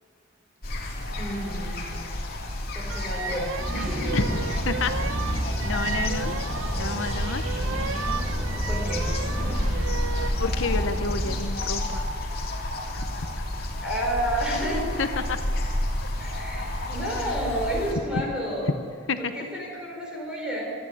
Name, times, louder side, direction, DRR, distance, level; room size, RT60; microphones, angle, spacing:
sound 1, 0.6-17.9, left 1 dB, 45° left, 2.9 m, -30 dB
voice 1, 1.2-2.0 2.7-4.1 8.7-9.1 13.8-15.0 16.2-18.8 19.2-20.7, equal, 5° right, -2 dB, 4.7 m, -31 dB
sound 2, 2.9-10.4, right 6 dB, 75° right, 0.7 m, -35 dB
sound 3, 3.5-11.4, equal, 35° right, 4.7 m, -31 dB
voice 2, 4.1-4.9 5.3-6.3 6.8-7.5 10.4-12.1 12.9-13.4 15.0-15.4 19.1-19.3, left 4 dB, 70° left, 9 dB, 0.8 m, -30 dB
27.0 x 10.0 x 9.8 m, 2.3 s
head